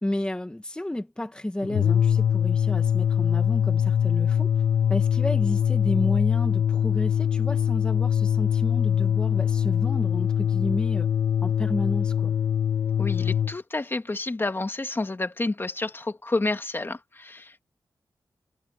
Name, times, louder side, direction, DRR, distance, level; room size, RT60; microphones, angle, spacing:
voice 1, 0.0-4.5 4.9-11.1 11.4-12.3, left 1 dB, 10° left, 1.7 m, -31 dB
sound 1, 1.6-13.6, left 8 dB, 85° left, 0.8 m, -23 dB
voice 2, 13.0-17.6, left 2 dB, 30° left, 2.0 m, -29 dB
wide cardioid pair, 85°, 8 cm